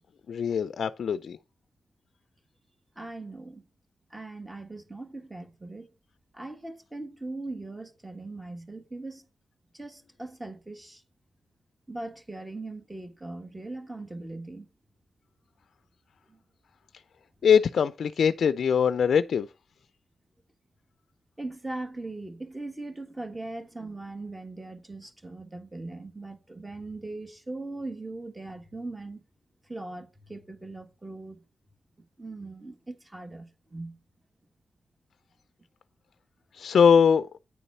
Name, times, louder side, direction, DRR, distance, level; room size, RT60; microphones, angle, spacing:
voice 1, 0.3-1.4 17.4-19.5 36.5-37.3, left 7 dB, 75° left, 0.3 m, -22 dB
voice 2, 2.9-3.6 4.1-5.9 6.3-9.2 9.7-11.0 11.9-14.7 16.3-16.4 21.4-29.2 29.7-31.4 32.2-34.0, right 2 dB, 15° right, 1.5 m, -40 dB
9.5 x 4.0 x 5.5 m
cardioid pair, 80°, 0 cm